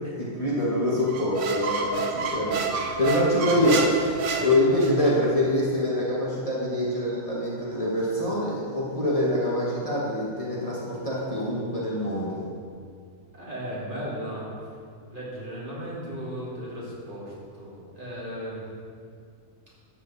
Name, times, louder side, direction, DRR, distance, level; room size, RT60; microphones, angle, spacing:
voice 1, 0.2-12.4, left 1 dB, 25° left, -6 dB, 1.7 m, -25 dB
Squeak, 1.1-5.1, right 4 dB, 60° right, 1.2 m, -29 dB
voice 2, 13.3-14.5 15.1-18.7, equal, 35° right, -7 dB, 2.9 m, -36 dB
12.5 x 8.2 x 4.2 m, 2.2 s
omnidirectional pair, 1.5 m